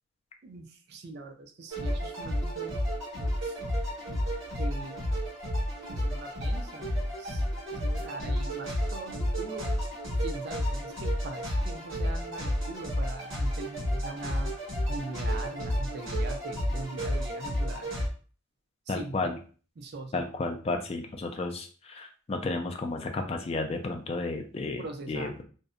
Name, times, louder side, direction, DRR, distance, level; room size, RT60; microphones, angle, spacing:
voice 1, 0.4-2.8 3.4-3.6 4.6-5.1 5.9-7.4 7.7-9.7 10.2-14.5 14.9-17.9 18.9-19.3 19.8-20.3 24.8-25.3, right 2 dB, 50° right, 6 dB, 0.4 m, -42 dB
sound 1, 1.7-18.1, equal, 70° right, 1.2 m, -31 dB
voice 2, 18.9-19.4 20.1-25.3, left 3 dB, 30° left, 4 dB, 0.3 m, -32 dB
2.6 x 2.0 x 2.3 m, 0.39 s
head